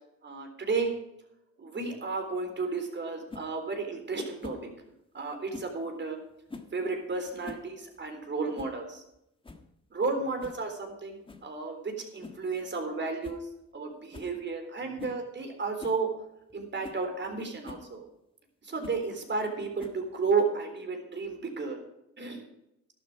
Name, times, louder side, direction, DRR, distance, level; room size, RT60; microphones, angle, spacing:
voice 1, 0.2-0.9 1.6-4.6 5.1-6.2 6.7-9.0 9.9-13.4 13.7-16.1 16.5-18.0 18.6-21.8 22.2-22.4, right 4 dB, 35° right, 5 dB, 3.8 m, -32 dB
sound 1, 3.3-3.5 4.4-4.7 5.5-5.8 6.5-6.8 7.3-7.7 8.0-8.1 8.5-8.8 9.1-9.2 9.4-9.7 10.4-10.6 11.3-11.5 12.2-12.5 12.8-12.9 13.2-13.4 13.7-13.8 14.1-14.3 15.0-15.2 15.8-16.0 16.5-16.6 16.8-17.0 17.6-17.9 18.8-19.0 19.8-20.2, left 3 dB, 15° left, 1.5 m, -45 dB
12.5 x 12.0 x 5.0 m, 0.84 s
cardioid pair, 90°, 30 cm